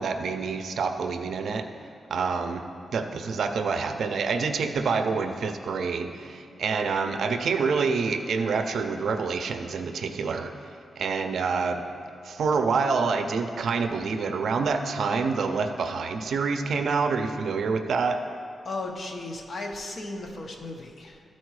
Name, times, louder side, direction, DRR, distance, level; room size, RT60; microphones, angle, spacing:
voice 1, 0.0-1.7 2.1-2.6 2.9-10.5 11.0-11.8 12.2-18.2, right 5 dB, 70° right, 7 dB, 0.5 m, -27 dB
voice 2, 18.6-21.2, left 2 dB, 45° left, 2 dB, 0.8 m, -35 dB
13.0 x 4.3 x 4.7 m, 2.4 s
wide cardioid pair, 160°, 0 cm